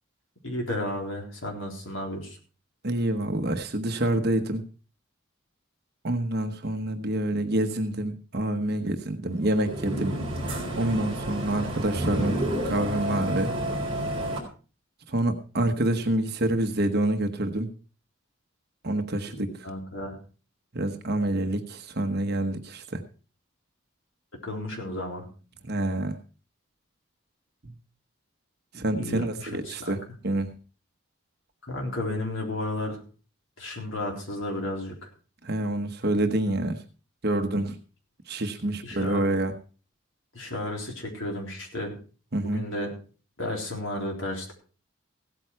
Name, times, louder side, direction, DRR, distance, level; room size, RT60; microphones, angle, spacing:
voice 1, 0.4-2.4 19.3-20.2 24.4-25.3 28.9-30.0 31.6-33.0 33.6-35.1 37.5-37.6 38.8-39.2 40.3-41.9 42.5-42.9 43.4-44.5, left 1 dB, 70° left, 0 dB, 3.9 m, -33 dB
voice 2, 2.8-4.6 6.0-10.2 10.8-13.5 15.1-17.7 18.8-19.7 20.7-23.0 25.6-26.2 27.6-27.7 28.7-30.0 30.2-30.5 35.4-36.8 37.2-37.7 38.3-39.5 42.3-42.6, right 1 dB, 50° right, 6 dB, 1.1 m, -27 dB
sound 1, 9.4-14.4, right 1 dB, 25° right, 3.9 m, -30 dB
16.0 x 9.1 x 4.6 m, 0.37 s
head